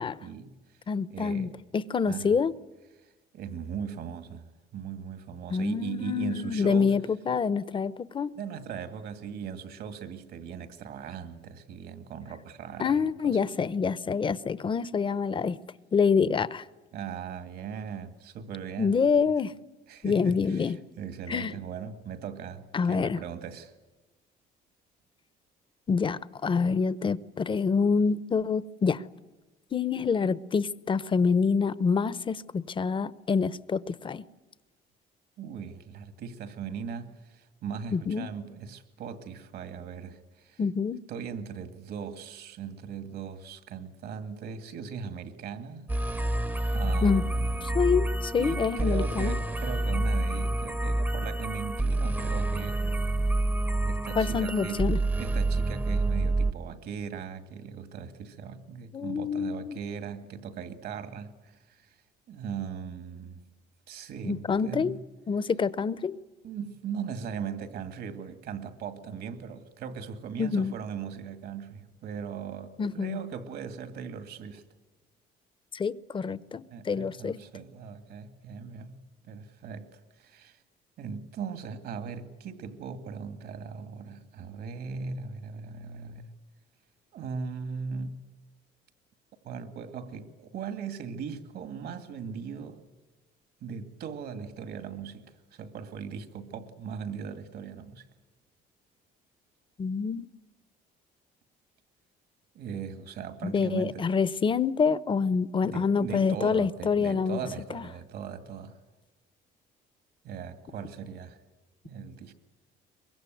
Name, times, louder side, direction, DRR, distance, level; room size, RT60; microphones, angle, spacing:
voice 1, 0.2-0.8 1.1-1.6 2.1-2.4 3.0-7.0 8.3-13.4 16.9-19.0 19.9-23.7 35.4-40.6 41.1-45.9 46.7-48.0 48.4-52.8 53.8-54.9 55.2-62.0 62.3-63.4 63.9-65.0 65.9-66.1 66.4-74.6 76.7-80.6 81.0-86.3 87.1-88.2 89.4-92.8 93.6-98.1 102.5-104.1 105.6-108.8 110.2-111.4 111.8-112.3, right 6 dB, 70° right, 2.2 m, -39 dB
voice 2, 0.9-2.5 5.5-8.3 12.8-15.6 15.9-16.6 18.8-19.5 20.0-20.8 21.3-21.5 22.7-23.2 25.9-29.0 29.7-34.2 37.9-38.3 40.6-41.0 47.0-47.2 47.7-49.4 54.1-55.0 58.9-59.8 64.2-65.0 65.3-66.2 70.4-70.7 72.8-73.2 75.7-77.4 99.8-100.3 103.4-107.4 107.7-107.8, left 5 dB, 30° left, 0.8 m, -26 dB
sound 1, 45.9-56.5, right 2 dB, 10° right, 0.8 m, -28 dB
23.5 x 22.0 x 9.2 m
cardioid pair, 110°, 17 cm